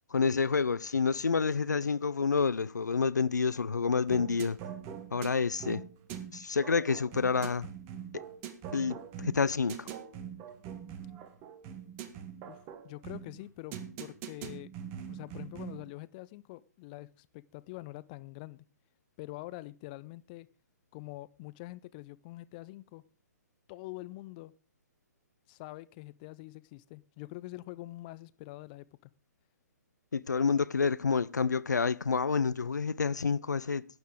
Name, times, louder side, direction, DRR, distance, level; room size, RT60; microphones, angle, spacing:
voice 1, 0.1-4.6 5.1-5.8 6.3-7.7 8.1-8.2 8.7-9.9 30.1-33.8, left 5 dB, 75° left, 0.5 m, -28 dB
sound 1, 4.1-15.9, right 8 dB, 25° right, 1.4 m, -43 dB
voice 2, 12.5-14.7 15.1-18.6 19.2-20.5 20.9-23.0 23.7-24.5 25.5-29.1, left 19 dB, 30° left, 0.5 m, -45 dB
12.0 x 9.3 x 5.0 m
figure-of-eight pair, 130°, 9 cm